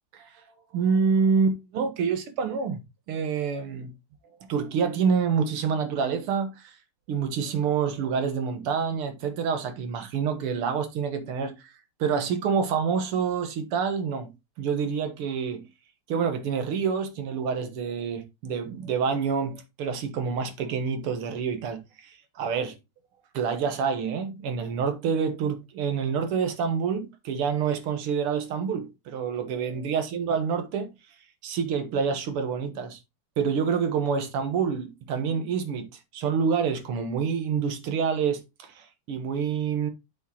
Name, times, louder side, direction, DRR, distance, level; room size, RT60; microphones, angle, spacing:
voice 1, 0.7-2.8 3.1-3.9 4.5-6.7 7.1-11.7 12.0-14.3 14.6-15.7 16.1-22.8 23.3-30.9 31.4-33.0 33.4-35.9 36.1-39.9, right 6 dB, 85° right, 2.1 m, -27 dB
7.9 x 6.0 x 2.9 m
omnidirectional pair, 2.4 m